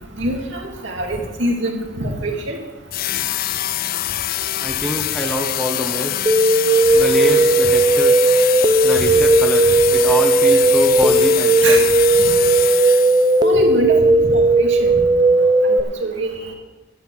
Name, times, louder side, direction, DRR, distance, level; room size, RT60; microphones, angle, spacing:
voice 1, 0.2-2.6 11.6-11.8 13.4-16.5, right 1 dB, 70° right, 0 dB, 2.4 m, -24 dB
sound 1, 2.9-13.5, left 13 dB, 50° left, 0.4 m, -24 dB
voice 2, 4.6-6.1 6.9-8.3 8.8-11.9, left 1 dB, 5° left, 2 dB, 1.1 m, -25 dB
sound 2, 6.3-15.8, right 2 dB, 20° right, 0.6 m, -15 dB
11.0 x 9.4 x 6.2 m, 1.2 s
head